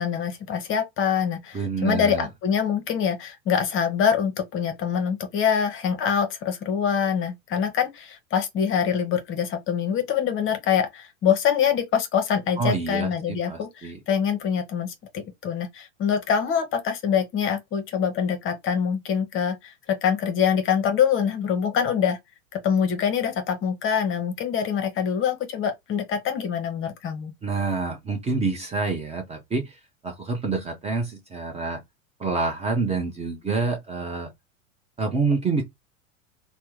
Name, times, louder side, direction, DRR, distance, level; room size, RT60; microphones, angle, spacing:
voice 1, 0.0-22.2 22.5-27.3, left 7 dB, 30° left, 0.8 m, -25 dB
voice 2, 1.5-2.3 12.6-14.0 27.4-29.8 30.0-31.8 32.2-34.3 35.0-35.6, right 4 dB, 15° right, 0.6 m, -27 dB
3.3 x 2.1 x 3.0 m
hypercardioid pair, 100°, 40 cm